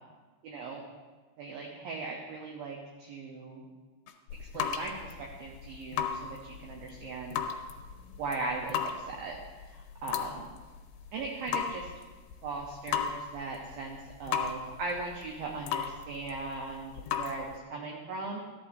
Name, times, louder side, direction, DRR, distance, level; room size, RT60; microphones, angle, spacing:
voice 1, 0.4-0.8 1.4-3.7 4.4-7.4 8.2-9.4 9.7-10.5 11.1-11.9 12.4-18.4, right 3 dB, 75° right, 0 dB, 2.2 m, -39 dB
sound 1, 4.1-17.6, left 8 dB, 85° left, 2.9 m, -37 dB
13.5 x 11.0 x 2.7 m, 1.3 s
omnidirectional pair, 5.2 m